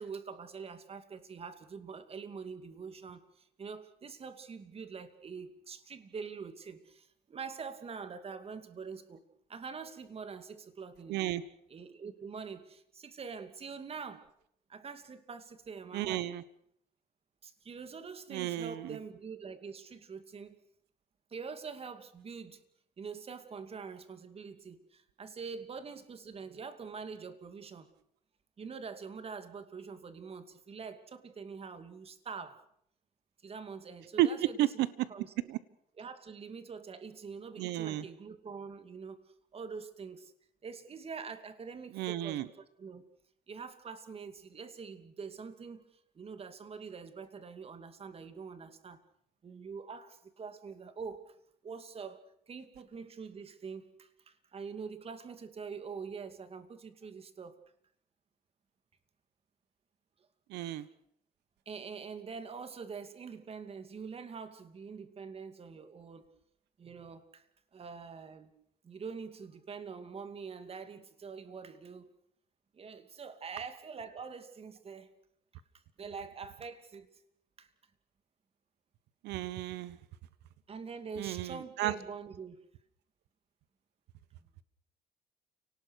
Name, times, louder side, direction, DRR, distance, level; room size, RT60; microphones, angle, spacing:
voice 1, 0.0-9.2 9.5-11.4 11.7-14.3 14.7-16.3 17.4-20.6 21.3-22.6 23.0-27.9 28.6-32.6 33.4-34.6 35.1-35.5 36.0-39.2 39.5-40.3 40.6-42.5 42.8-43.1 43.5-49.0 49.4-51.4 51.6-57.6 60.6-60.7 61.7-66.3 66.8-67.5 67.7-68.5 68.8-72.1 72.7-75.1 76.0-77.2 77.6-77.7 80.7-82.6, right 5 dB, 35° right, 10 dB, 2.5 m, -45 dB
voice 2, 11.1-11.4 15.9-16.4 18.3-19.0 34.2-34.9 35.5-35.6 37.6-38.0 41.9-42.5 60.5-60.8 79.2-80.0 81.2-81.9, right 13 dB, 80° right, 17 dB, 1.1 m, -32 dB
30.0 x 19.0 x 6.4 m, 0.69 s
cardioid pair, 110°, 17 cm